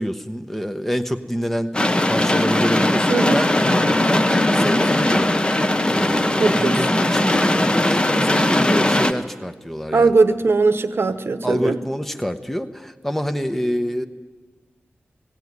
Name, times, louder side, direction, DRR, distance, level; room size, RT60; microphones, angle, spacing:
voice 1, 0.0-1.7 2.1-5.3 5.8-10.1 11.4-14.1, equal, 5° left, 7 dB, 1.0 m, -26 dB
sound 1, 1.7-9.1, left 1 dB, 20° left, 0.9 m, -19 dB
sound 2, 3.0-7.1, left 3 dB, 85° left, 0.8 m, -32 dB
voice 2, 6.4-7.0 9.9-11.8, right 4 dB, 65° right, 11 dB, 1.0 m, -19 dB
18.0 x 17.0 x 9.6 m, 1.4 s
wide cardioid pair, 100°, 4 cm